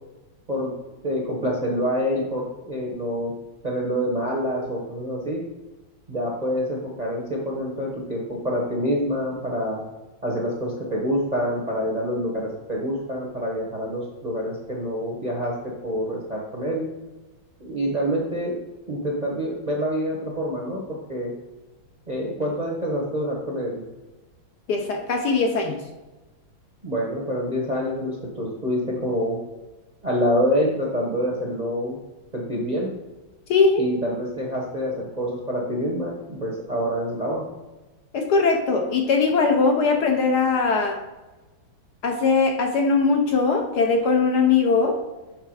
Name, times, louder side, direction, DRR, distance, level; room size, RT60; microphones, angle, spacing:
voice 1, 1.0-3.3 3.6-5.4 6.1-9.8 10.2-15.5 15.8-16.9 17.6-21.3 22.1-23.8 26.8-29.4 30.0-32.0 32.3-32.9 33.8-37.4, equal, 30° right, -2 dB, 0.8 m, -26 dB
voice 2, 24.7-25.8 33.5-33.8 38.1-41.0 42.0-45.0, left 4 dB, 65° left, 2 dB, 1.2 m, -20 dB
6.7 x 3.4 x 4.8 m, 1.1 s
omnidirectional pair, 2.1 m